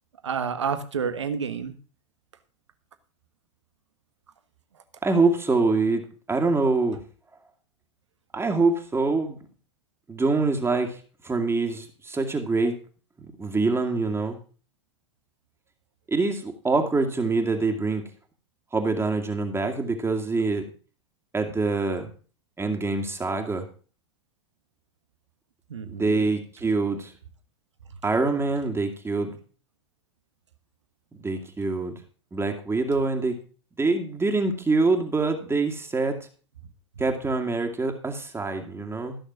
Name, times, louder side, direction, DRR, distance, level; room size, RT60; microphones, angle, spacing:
voice 1, 0.2-1.8 25.7-26.2, right 6 dB, 85° right, 10 dB, 1.4 m, -29 dB
voice 2, 5.0-6.0 6.3-7.0 8.3-9.4 10.1-12.7 13.2-14.4 16.1-18.0 18.7-20.7 21.3-22.1 22.6-23.7 25.9-27.1 28.0-29.4 31.1-31.9 32.3-33.4 33.8-36.2 37.0-39.2, right 3 dB, 15° right, 3 dB, 2.3 m, -25 dB
14.5 x 6.5 x 6.0 m, 0.38 s
hypercardioid pair, 80°, 15 cm